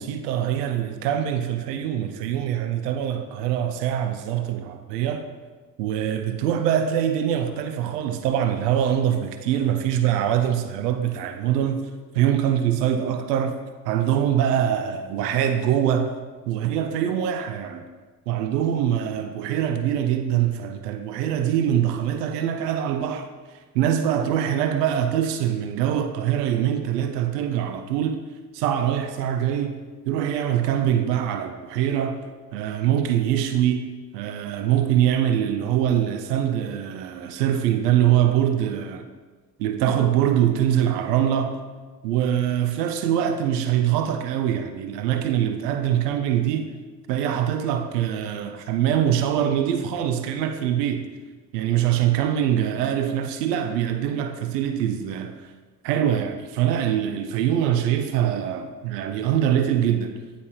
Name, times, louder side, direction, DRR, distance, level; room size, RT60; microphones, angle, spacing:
voice 1, 0.0-5.3 5.8-11.9 12.1-13.6 13.9-16.2 16.5-17.9 18.3-23.3 23.7-28.2 28.5-32.2 32.5-33.9 34.1-39.1 39.6-41.6 42.0-46.7 47.1-51.1 51.5-55.4 55.8-60.1, right 10 dB, 75° right, 0.6 m, -23 dB
9.5 x 4.2 x 2.3 m
figure-of-eight pair, 45°, 49 cm